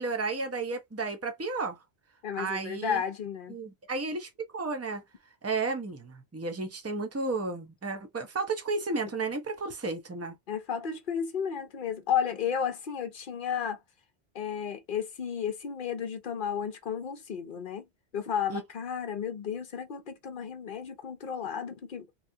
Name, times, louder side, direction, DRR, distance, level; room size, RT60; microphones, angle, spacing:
voice 1, 0.0-1.8 2.4-3.0 3.5-5.0 5.4-10.4 18.5-18.6, right 3 dB, 20° right, 0.5 m, -33 dB
voice 2, 2.2-3.5 10.5-13.8 14.3-17.9 18.1-22.1, left 8 dB, 60° left, 0.7 m, -33 dB
3.0 x 2.3 x 2.7 m
omnidirectional pair, 1.1 m